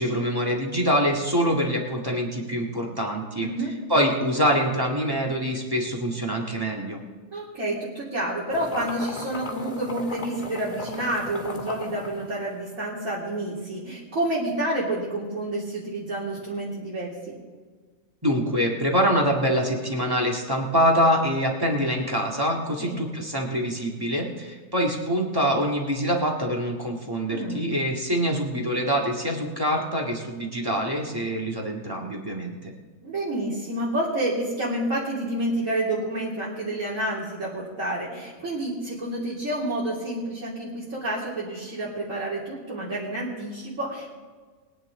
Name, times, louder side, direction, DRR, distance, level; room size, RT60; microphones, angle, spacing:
voice 1, 0.0-3.5 3.9-7.0 18.2-32.7, equal, 15° right, -1 dB, 2.0 m, -25 dB
voice 2, 3.4-3.7 7.3-17.4 22.8-23.0 27.2-27.7 33.0-44.1, right 1 dB, 70° right, -9 dB, 3.3 m, -29 dB
sound 1, 8.5-12.9, left 2 dB, 30° left, 2.3 m, -36 dB
22.5 x 9.4 x 3.8 m, 1.4 s
omnidirectional pair, 1.5 m